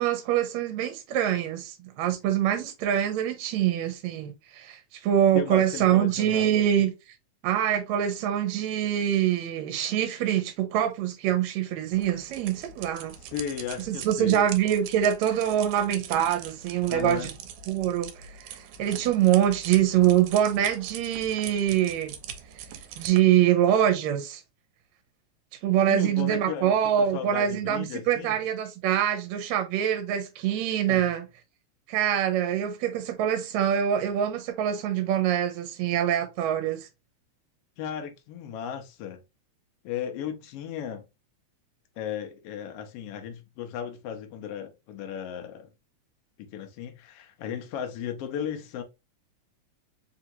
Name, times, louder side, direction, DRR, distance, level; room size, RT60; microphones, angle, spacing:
voice 1, 0.0-6.9 7.4-13.1 13.9-17.3 17.7-18.5 18.8-22.1 23.0-24.4 25.6-31.3 31.9-36.9, right 10 dB, 70° right, 2.0 m, -24 dB
voice 2, 5.3-6.7 13.3-14.5 16.9-17.3 25.9-28.4 30.9-31.1 37.8-39.2 39.8-41.0 42.0-45.7 46.4-48.8, left 9 dB, 70° left, 1.5 m, -35 dB
sound 1, 11.9-23.2, right 9 dB, 90° right, 2.1 m, -42 dB
4.8 x 2.8 x 2.8 m
omnidirectional pair, 3.5 m